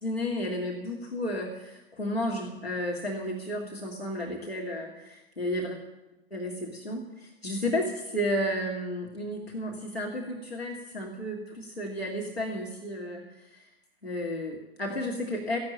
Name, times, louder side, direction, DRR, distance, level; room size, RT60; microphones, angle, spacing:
voice 1, 0.0-5.8 6.3-13.7 14.0-15.6, left 1 dB, 90° left, -1 dB, 2.1 m, -32 dB
15.0 x 11.5 x 7.5 m, 1.0 s
figure-of-eight pair, 95°, 30 cm